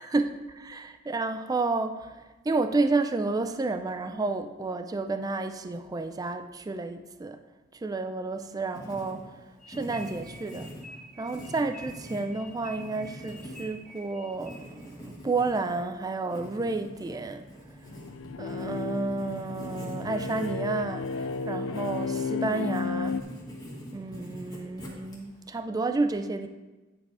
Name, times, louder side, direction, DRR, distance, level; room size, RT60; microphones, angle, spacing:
voice 1, 0.1-7.4 7.7-9.4 9.7-10.7 11.2-17.5 18.4-23.2 23.9-26.5, right 3 dB, 20° right, 0.3 m, -31 dB
Writing, 8.3-25.5, equal, 20° left, 1.7 m, -45 dB
sound 1, 9.6-14.9, left 1 dB, ahead, 0.7 m, -49 dB
sound 2, 17.9-23.2, left 4 dB, 85° left, 0.4 m, -33 dB
9.1 x 4.8 x 4.9 m
head